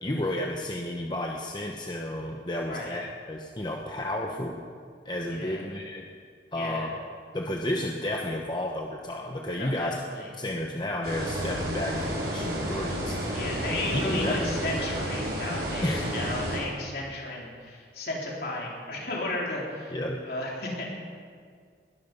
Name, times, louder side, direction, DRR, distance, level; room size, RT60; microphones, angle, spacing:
voice 1, 0.0-4.6 5.0-6.1 6.5-7.0 7.3-10.0 10.4-13.3 13.9-14.9 15.8-16.0 19.9-20.2, left 1 dB, 25° left, 1 dB, 0.9 m, -32 dB
voice 2, 2.6-3.0 5.3-5.6 6.5-6.9 9.6-10.3 13.3-20.0 20.2-20.9, left 2 dB, 60° left, -3 dB, 3.9 m, -34 dB
sound 1, 11.0-16.6, equal, 65° right, 5.0 m, -31 dB
20.5 x 12.5 x 5.4 m, 2.1 s
head